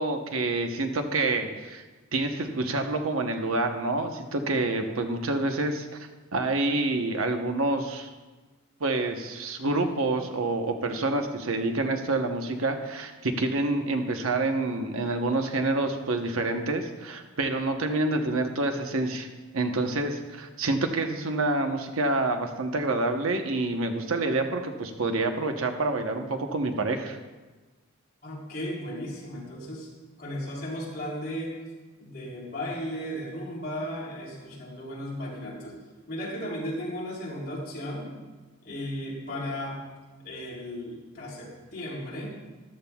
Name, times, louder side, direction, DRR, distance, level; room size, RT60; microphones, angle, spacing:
voice 1, 0.0-1.8 2.1-8.1 8.8-19.3 19.5-27.2, right 2 dB, 75° right, 5 dB, 0.9 m, -27 dB
voice 2, 28.2-29.9 30.2-31.6 32.0-35.8 36.1-38.1 38.6-39.8 40.2-42.4, equal, 50° left, -5 dB, 3.7 m, -35 dB
14.0 x 11.5 x 2.3 m, 1.2 s
head